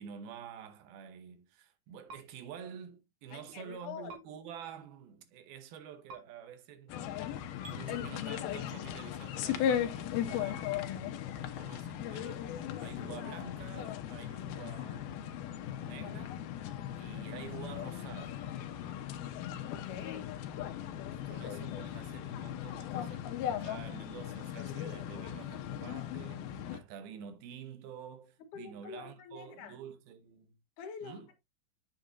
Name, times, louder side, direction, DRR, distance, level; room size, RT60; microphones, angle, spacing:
voice 1, 0.0-7.3 7.7-16.4 16.9-18.4 21.1-30.6 31.0-31.3, right 8 dB, 80° right, 3.0 m, -49 dB
sound 1, 2.1-2.2 4.1-4.2 6.1-6.2 7.6-7.8, right 3 dB, 55° right, 3.2 m, -47 dB
voice 2, 3.3-4.1 19.7-20.3 28.5-29.8 30.8-31.4, left 7 dB, 65° left, 2.7 m, -46 dB
sound 2, 6.9-26.8, left 10 dB, 85° left, 2.8 m, -38 dB
8.9 x 7.7 x 2.6 m
omnidirectional pair, 4.4 m